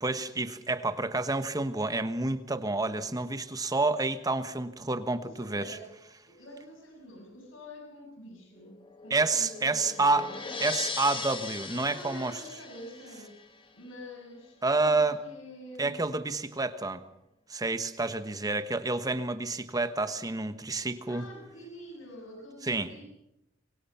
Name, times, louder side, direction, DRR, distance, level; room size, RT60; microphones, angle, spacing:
voice 1, 0.0-5.8 9.1-10.3 10.6-12.4 14.6-15.2 15.8-17.0 17.5-21.3 22.6-22.9, right 3 dB, 20° right, 10 dB, 1.3 m, -29 dB
voice 2, 5.2-5.9 6.2-10.4 11.9-13.4 13.7-15.9 21.1-23.0, left 1 dB, 80° left, 1 dB, 7.2 m, -47 dB
sound 1, 8.6-13.7, left 4 dB, 25° left, 1.8 m, -39 dB
25.5 x 23.0 x 5.8 m, 0.86 s
head